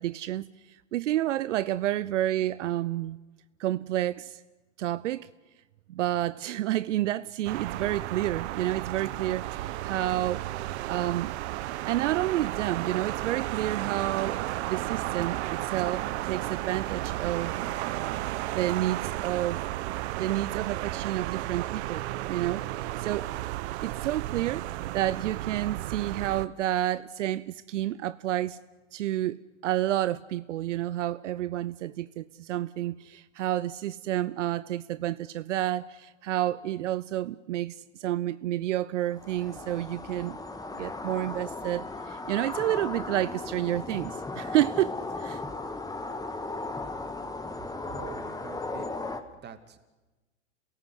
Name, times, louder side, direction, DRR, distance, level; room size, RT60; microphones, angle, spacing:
voice 1, 0.0-3.2 3.6-4.4 4.8-5.3 5.9-10.5 10.9-11.3 11.8-14.4 14.7-17.6 18.5-19.6 20.2-23.3 23.8-28.6 28.9-40.4 40.7-45.4, right 13 dB, 75° right, 0.7 m, -30 dB
sound 1, 7.5-26.5, right 16 dB, 60° right, 1.0 m, -33 dB
sound 2, 39.1-49.2, left 2 dB, 10° left, 1.8 m, -36 dB
voice 2, 47.9-48.9 49.4-49.8, right 8 dB, 25° right, 2.4 m, -44 dB
27.5 x 18.0 x 8.1 m
hypercardioid pair, 105°, 37 cm